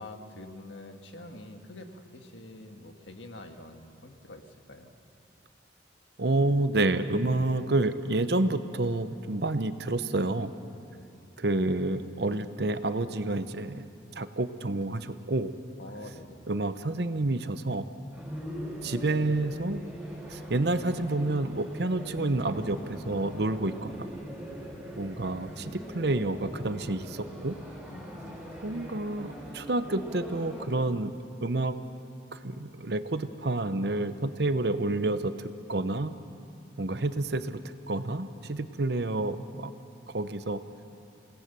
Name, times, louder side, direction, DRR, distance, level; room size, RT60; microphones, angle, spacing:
voice 1, 0.0-5.0 10.9-11.2 15.8-16.5 24.6-24.8 27.9-28.5, left 2 dB, 80° left, 5 dB, 1.8 m, -46 dB
voice 2, 6.2-10.5 11.4-13.9 14.2-15.5 16.5-17.8 18.8-19.8 20.3-24.1 25.0-27.6 28.6-31.1 31.4-31.8 32.3-36.1 36.8-37.6 37.9-39.7 40.1-40.6, right 2 dB, 60° right, 11 dB, 0.9 m, -29 dB
sound 1, 18.1-30.7, equal, 5° right, 5.8 m, -42 dB
29.0 x 18.0 x 6.9 m, 2.5 s
head